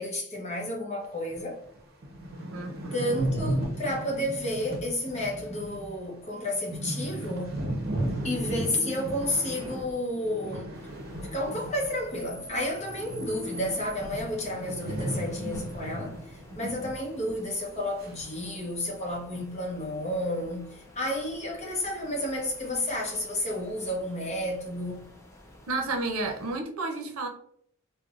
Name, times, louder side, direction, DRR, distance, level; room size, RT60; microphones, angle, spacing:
voice 1, 0.0-1.6 2.9-7.6 8.2-10.8 11.3-25.1, left 1 dB, 30° left, 0.8 m, -31 dB
sound 1, 1.3-1.4 1.8-1.9 2.0-12.3 12.5-17.0 17.3-17.4 18.0-18.4, right 1 dB, 45° right, 0.8 m, -35 dB
voice 2, 2.5-3.1 25.7-27.3, right 3 dB, 75° right, 0.6 m, -31 dB
sound 2, 10.7-26.6, left 1 dB, 15° left, 0.4 m, -49 dB
4.5 x 2.2 x 2.4 m
head